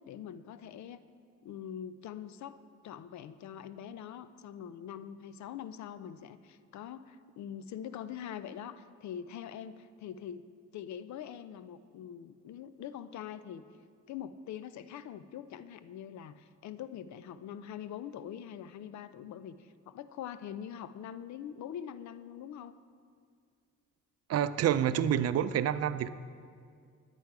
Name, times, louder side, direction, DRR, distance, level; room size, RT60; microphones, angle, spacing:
voice 1, 0.1-1.0 1.4-10.5 10.7-13.6 14.1-22.8, left 9 dB, 70° left, 14 dB, 0.5 m, -43 dB
voice 2, 24.3-26.1, right 10 dB, 55° right, 14 dB, 0.4 m, -28 dB
10.5 x 9.0 x 4.7 m, 2.2 s
cardioid pair, 90°, 30 cm